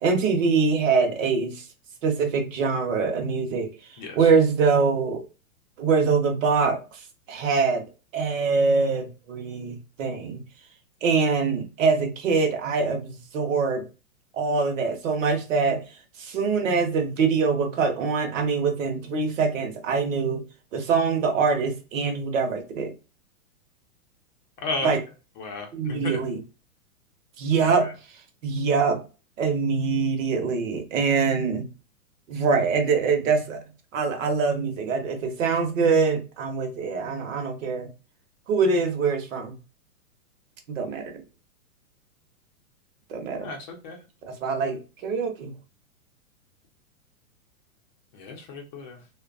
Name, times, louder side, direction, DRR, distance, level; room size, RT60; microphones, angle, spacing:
voice 1, 0.0-1.6 2.0-5.2 5.8-7.8 8.1-10.4 11.0-13.8 14.3-15.8 16.2-20.4 20.7-22.9 24.8-25.0 25.7-26.4 27.4-27.9 28.4-29.0 29.4-31.7 32.3-33.6 33.9-37.9 38.5-39.5 40.7-41.0 43.1-43.5 44.2-45.5, right 5 dB, 60° right, 0.9 m, -24 dB
voice 2, 4.0-4.3 24.6-24.9 25.4-26.2 43.4-44.0 48.1-49.0, left 3 dB, 35° left, 0.6 m, -34 dB
2.8 x 2.2 x 2.4 m
hypercardioid pair, 140°, 44 cm